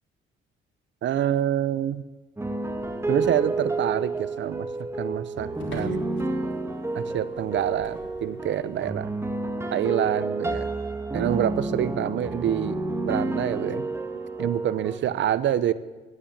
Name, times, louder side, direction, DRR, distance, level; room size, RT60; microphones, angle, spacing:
voice 1, 1.0-2.0 3.1-4.7 5.0-6.2 6.9-9.1 9.7-10.7 11.1-13.9 14.4-15.7, right 11 dB, 70° right, 17 dB, 0.8 m, -27 dB
sound 1, 2.4-15.0, right 2 dB, 15° right, 1.7 m, -30 dB
sound 2, 2.6-8.9, left 2 dB, 70° left, 3.4 m, -48 dB
14.5 x 10.0 x 8.8 m, 1.2 s
cardioid pair, 90°, 20 cm